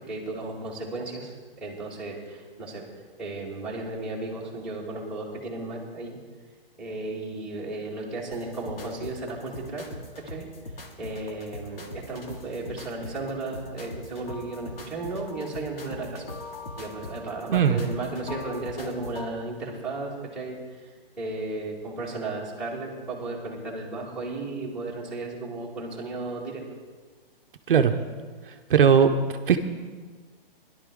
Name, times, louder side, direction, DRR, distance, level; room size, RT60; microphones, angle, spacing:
voice 1, 0.1-2.8 3.2-6.2 6.8-9.8 10.2-10.5 11.0-16.3 16.8-26.6, right 2 dB, 5° right, -7 dB, 1.7 m, -34 dB
sound 1, 8.3-19.3, left 2 dB, 70° left, 2.3 m, -41 dB
voice 2, 28.7-29.1 29.5-29.6, right 7 dB, 60° right, 6 dB, 0.8 m, -18 dB
17.0 x 11.5 x 3.7 m, 1.5 s
hypercardioid pair, 165°, 30 cm